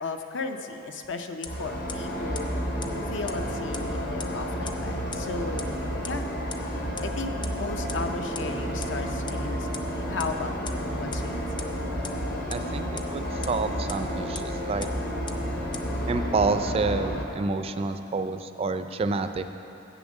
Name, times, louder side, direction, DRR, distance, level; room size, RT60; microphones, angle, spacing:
voice 1, 0.0-2.5 3.1-5.7 6.0-6.3 7.0-11.7, left 3 dB, 70° left, 6 dB, 0.6 m, -35 dB
sound 1, 1.4-1.5 1.9-2.0 2.3-2.4 2.8-2.9 3.3-3.4 3.7-3.8 4.2-4.3 4.7-4.8 5.1-5.2 5.6-5.7 6.0-6.1 6.5-6.6 7.0-7.1 7.4-7.5 7.9-8.0 8.3-8.4 8.8-8.9 9.3-9.4 9.7-9.8 10.2-10.3 10.7-10.8 11.1-11.2 11.6-11.7 12.0-12.1 12.5-12.6 13.0-13.1 13.4-13.5 13.9-14.0 14.3-14.4 14.8-14.9 15.3-15.4 15.7-15.8, left 6 dB, 25° left, 0.5 m, -36 dB
sound 2, 1.5-17.2, equal, 50° left, 1.0 m, -31 dB
voice 2, 12.5-14.9 16.1-19.5, right 3 dB, 30° right, 9 dB, 0.3 m, -28 dB
8.5 x 7.0 x 6.4 m, 3.0 s
head